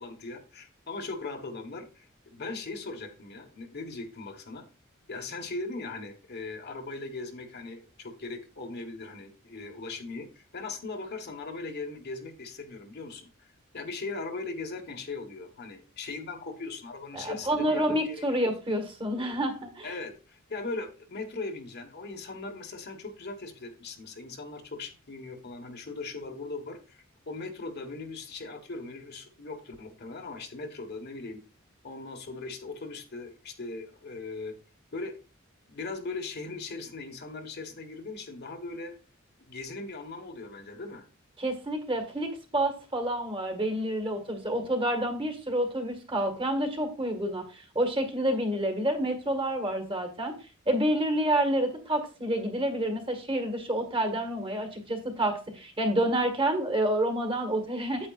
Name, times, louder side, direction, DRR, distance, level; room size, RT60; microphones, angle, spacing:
voice 1, 0.0-4.7 5.1-18.3 19.8-31.4 31.8-34.6 34.9-35.1 35.7-38.9 39.4-41.1, left 3 dB, 55° left, 5 dB, 1.3 m, -39 dB
voice 2, 17.1-19.9 41.4-50.3 50.7-58.1, right 1 dB, 25° right, 5 dB, 1.7 m, -28 dB
8.9 x 8.6 x 2.4 m, 0.34 s
head